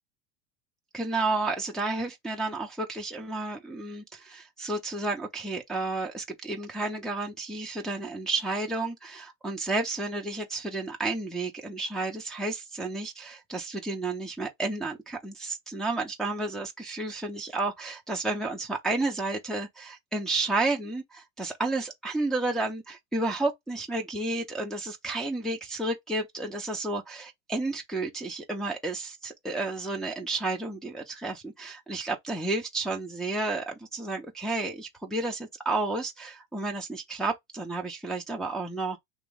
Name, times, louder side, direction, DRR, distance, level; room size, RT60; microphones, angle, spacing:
voice 1, 0.9-39.0, right 2 dB, ahead, 0.6 m, -31 dB
3.0 x 2.9 x 3.5 m
supercardioid pair, 135°, 37 cm